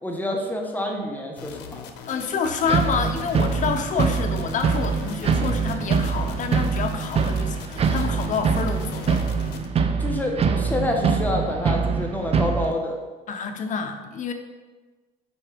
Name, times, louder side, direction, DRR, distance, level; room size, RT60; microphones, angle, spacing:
voice 1, 0.0-1.8 10.0-13.0, left 1 dB, 10° left, 1 dB, 1.2 m, -27 dB
sound 1, 1.4-9.7, left 7 dB, 85° left, 0.7 m, -40 dB
voice 2, 2.1-9.2 13.3-14.3, left 6 dB, 50° left, 6 dB, 0.8 m, -28 dB
sound 2, 2.7-12.7, right 5 dB, 35° right, 0.6 m, -24 dB
6.2 x 4.5 x 5.1 m, 1.3 s
cardioid pair, 110°, 17 cm